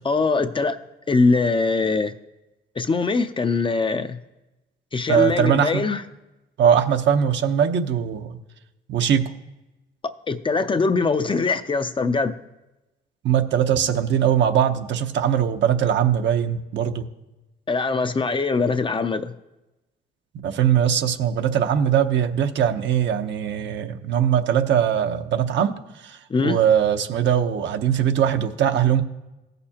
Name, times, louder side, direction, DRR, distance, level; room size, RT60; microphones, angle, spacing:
voice 1, 0.0-0.8 1.1-2.1 2.8-4.2 4.9-6.0 10.3-12.4 17.7-19.3 26.3-26.6, left 4 dB, 25° left, 0.5 m, -22 dB
voice 2, 5.1-5.7 6.6-8.4 8.9-9.2 13.2-17.1 20.4-29.0, right 9 dB, 65° right, 0.8 m, -21 dB
16.0 x 6.7 x 2.9 m
cardioid pair, 90°, 20 cm